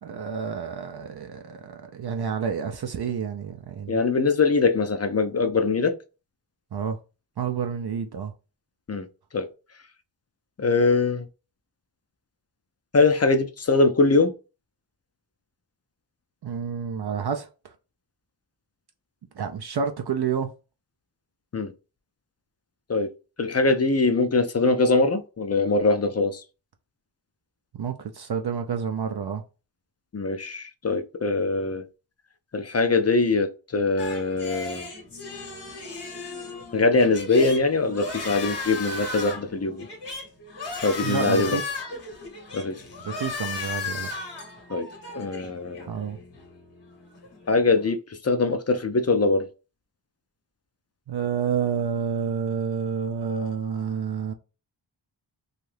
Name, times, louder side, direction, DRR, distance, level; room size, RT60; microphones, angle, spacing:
voice 1, 0.0-4.0 6.7-7.0 7.4-8.3 16.4-17.5 19.4-20.5 27.7-29.4 41.0-41.7 43.0-44.1 45.9-46.2 51.1-54.3, right 6 dB, 60° right, 0.5 m, -29 dB
voice 2, 3.9-5.9 8.9-9.1 9.3-9.5 10.6-11.3 12.9-14.3 21.5-21.7 22.9-23.1 23.4-26.4 30.1-31.8 32.5-34.9 36.7-39.9 40.8-41.6 42.5-42.7 44.7-44.9 45.1-45.9 47.5-49.5, left 3 dB, 35° left, 0.4 m, -22 dB
sound 1, 34.0-47.9, left 4 dB, 65° left, 1.0 m, -36 dB
2.6 x 2.4 x 3.2 m
wide cardioid pair, 45°, 45 cm